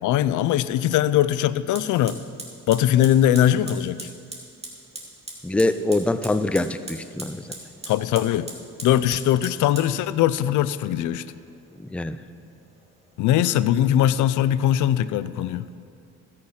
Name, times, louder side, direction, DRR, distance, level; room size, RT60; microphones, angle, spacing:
voice 1, 0.0-2.2 2.7-4.1 7.9-8.5 8.8-11.3 13.2-15.6, left 11 dB, 80° left, 16 dB, 0.5 m, -21 dB
Fire, 1.7-15.7, right 2 dB, 20° right, 2.4 m, -43 dB
voice 2, 5.4-7.4 11.8-12.2, left 2 dB, 5° left, 12 dB, 0.4 m, -24 dB
16.5 x 6.5 x 5.7 m, 2.4 s
cardioid pair, 90°, 30 cm